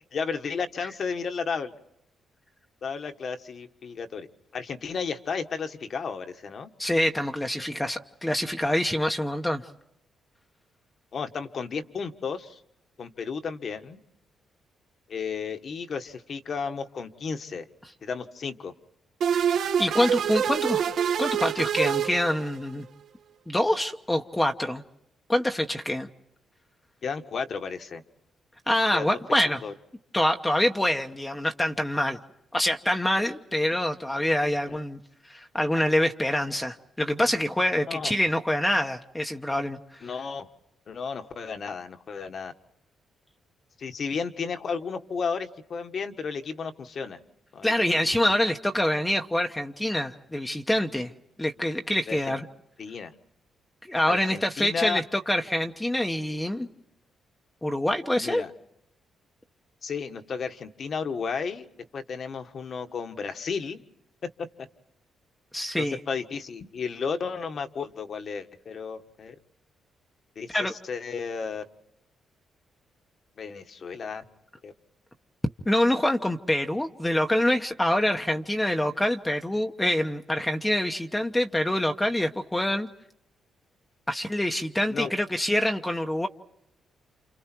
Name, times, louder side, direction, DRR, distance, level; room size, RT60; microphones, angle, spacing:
voice 1, 0.1-1.7 2.8-4.3 4.5-6.7 11.1-12.6 13.0-14.0 15.1-17.7 18.0-18.7 27.0-28.0 28.9-29.2 29.6-29.7 34.7-34.8 37.9-38.1 40.0-40.5 40.9-42.5 43.8-47.2 47.5-48.0 52.1-52.3 52.8-53.1 54.1-55.0 58.2-58.5 59.8-61.7 61.9-63.8 64.4-64.7 65.8-69.3 70.3-71.6 73.4-74.2 74.6-74.7 84.8-85.1, left 5 dB, 50° left, 7 dB, 1.7 m, -33 dB
voice 2, 6.8-9.6 19.5-20.8 21.2-22.8 23.5-24.8 25.3-26.1 28.7-29.6 30.1-32.2 32.5-35.0 35.2-40.1 47.6-51.1 51.4-52.5 53.8-56.7 57.6-58.4 65.5-66.0 70.5-70.7 75.6-82.9 84.1-86.3, left 1 dB, 10° left, 4 dB, 1.1 m, -26 dB
sound 1, 19.2-22.8, right 8 dB, 70° right, 1.7 m, -26 dB
29.5 x 29.0 x 4.6 m, 0.81 s
cardioid pair, 130°, 0 cm